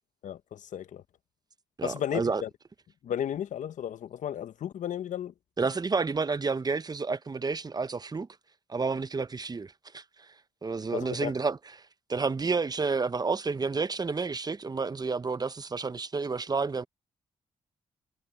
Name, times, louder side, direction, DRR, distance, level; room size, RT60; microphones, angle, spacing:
voice 1, 0.2-1.0 1.8-2.5 3.0-5.3 10.9-11.3, left 10 dB, 70° left, 1.0 m, -34 dB
voice 2, 1.8-2.4 5.6-8.3 8.7-10.3 10.6-11.6 12.1-16.8, right 4 dB, 30° right, 0.8 m, -30 dB
supercardioid pair, 55°, 13 cm